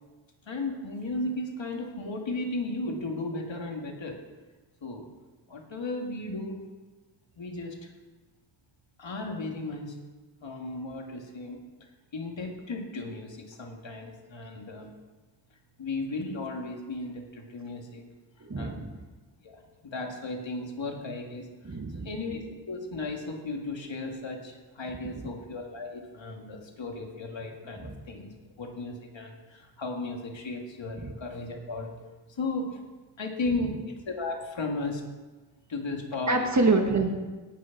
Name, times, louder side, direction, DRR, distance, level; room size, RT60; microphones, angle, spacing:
voice 1, 0.5-4.2 4.8-5.1 5.5-6.6 7.4-7.9 9.0-10.0 10.4-11.6 12.1-14.9 15.8-18.0 18.6-18.9 19.4-21.8 22.0-31.9 32.3-32.8 33.2-35.0 35.7-36.5, left 2 dB, 80° left, 1 dB, 2.2 m, -35 dB
voice 2, 18.4-18.9 21.6-22.1 25.0-25.1 31.0-31.1 36.3-37.2, right 3 dB, 40° right, 4 dB, 1.7 m, -26 dB
17.5 x 6.5 x 5.9 m, 1.2 s
wide cardioid pair, 85°, 45 cm